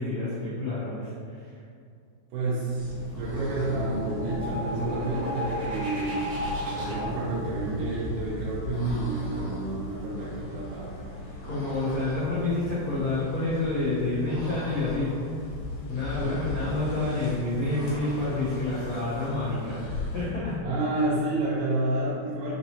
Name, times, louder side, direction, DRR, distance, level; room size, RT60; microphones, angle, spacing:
voice 1, 0.0-1.6 11.4-15.3 15.9-19.9 20.1-20.6, left 2 dB, 90° left, -11 dB, 1.4 m, -29 dB
voice 2, 2.3-6.3 6.8-11.0 16.2-16.6 20.6-22.5, right 2 dB, 85° right, -6 dB, 1.9 m, -30 dB
sound 1, 2.6-20.4, left 2 dB, 75° left, 2.6 m, -39 dB
sound 2, 3.0-10.6, equal, 65° right, 1.5 m, -35 dB
6.1 x 3.0 x 2.8 m, 2.4 s
omnidirectional pair, 4.5 m